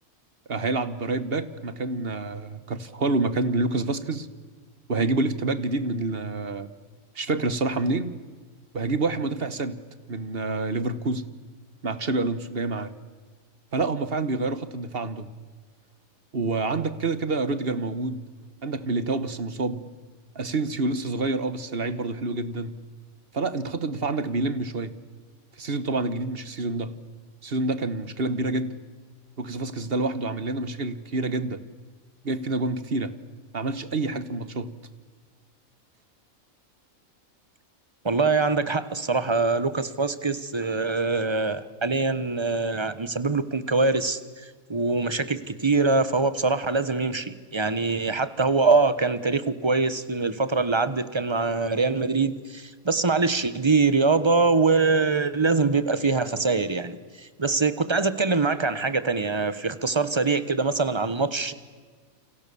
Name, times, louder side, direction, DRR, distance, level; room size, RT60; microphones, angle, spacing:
voice 1, 0.5-4.3 4.9-6.7 7.1-8.1 8.7-9.8 10.1-11.3 11.8-12.9 13.7-15.3 16.3-18.2 18.6-19.8 20.3-22.7 23.3-24.9 25.6-26.9 27.4-28.7 29.4-31.6 32.2-33.1 33.5-34.7, right 3 dB, 45° right, 14 dB, 1.5 m, -27 dB
voice 2, 38.0-44.2 44.7-61.5, right 3 dB, 20° right, 14 dB, 1.2 m, -23 dB
29.5 x 27.5 x 7.1 m, 1.5 s
omnidirectional pair, 1.5 m